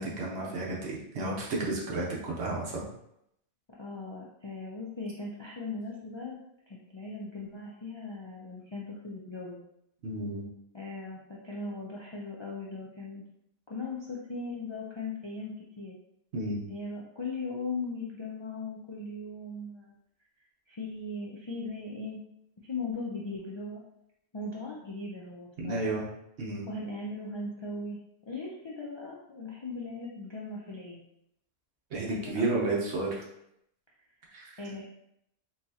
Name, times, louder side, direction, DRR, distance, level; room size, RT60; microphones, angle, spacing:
voice 1, 0.0-2.9 10.0-10.4 16.3-16.7 25.6-26.1 26.4-26.7 31.9-33.2 34.3-34.6, right 2 dB, 70° right, -3 dB, 1.2 m, -32 dB
voice 2, 3.8-6.4 6.7-9.6 10.7-13.2 13.7-16.0 16.7-19.9 20.7-22.2 22.6-23.8 24.3-25.9 26.7-28.0 28.3-31.0 32.0-32.9 34.6-34.8, left 3 dB, 45° left, -5 dB, 0.3 m, -38 dB
4.3 x 2.3 x 2.7 m, 0.77 s
omnidirectional pair, 1.2 m